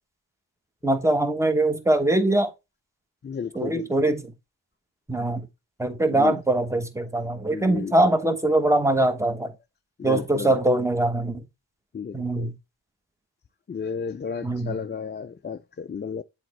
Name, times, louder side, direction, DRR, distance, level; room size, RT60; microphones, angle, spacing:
voice 1, 0.8-2.5 3.5-4.3 5.1-5.5 5.8-9.5 10.0-11.4 12.1-12.5 14.4-14.8, right 1 dB, 5° right, 1.0 m, -22 dB
voice 2, 3.2-4.1 6.1-6.3 7.5-7.9 10.0-10.6 11.9-12.5 13.7-16.2, left 6 dB, 25° left, 0.3 m, -33 dB
7.6 x 4.3 x 3.1 m
cardioid pair, 40°, 48 cm